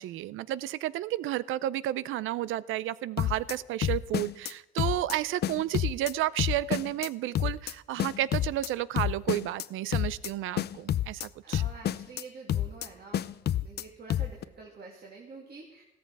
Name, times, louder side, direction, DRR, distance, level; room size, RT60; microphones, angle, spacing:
voice 1, 0.0-11.6, right 14 dB, 85° right, 19 dB, 0.5 m, -32 dB
sound 1, 3.2-3.5 3.8-4.5 4.8-5.1 5.4-6.1 6.4-7.1 7.3-7.7 8.0-8.7 9.0-9.6 9.9-10.3 10.6-11.3 11.5-12.2 12.5-12.9 13.1-13.8 14.1-14.4, left 11 dB, 55° left, 0.5 m, -29 dB
voice 2, 11.4-13.3 13.6-15.8, right 4 dB, 50° right, -2 dB, 2.5 m, -47 dB
15.5 x 14.0 x 4.7 m, 1.0 s
cardioid pair, 90°, 20 cm